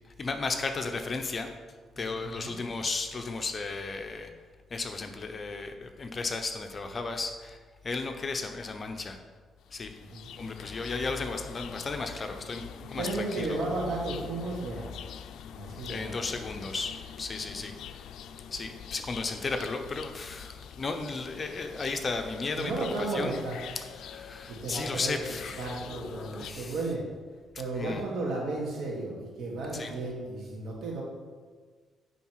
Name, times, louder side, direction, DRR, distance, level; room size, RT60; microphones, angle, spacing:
voice 1, 0.2-1.5 2.0-4.3 4.7-7.6 7.8-9.2 9.7-9.9 10.4-13.6 15.9-17.7 18.5-23.3 24.0-26.7 27.7-28.0 29.7-29.9, left 3 dB, 35° left, 6 dB, 0.8 m, -34 dB
voice 2, 1.9-2.6 10.0-10.3 12.9-14.9 15.5-16.1 22.5-23.6 24.5-27.0 27.6-31.0, right 2 dB, 70° right, -3 dB, 2.3 m, -34 dB
sound 1, 9.6-26.5, left 8 dB, 80° left, 0.4 m, -44 dB
9.8 x 4.1 x 4.7 m, 1.5 s
cardioid pair, 90°, 0 cm